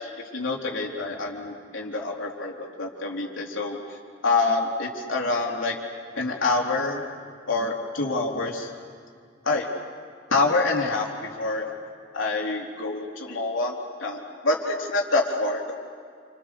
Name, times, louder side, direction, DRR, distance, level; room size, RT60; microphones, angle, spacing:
voice 1, 0.0-4.0 4.2-5.8 6.2-7.0 7.5-8.7 9.4-9.7 10.3-11.7 12.1-13.7 14.0-15.7, left 3 dB, 85° left, -1 dB, 3.8 m, -26 dB
29.0 x 28.0 x 6.9 m, 2.2 s
head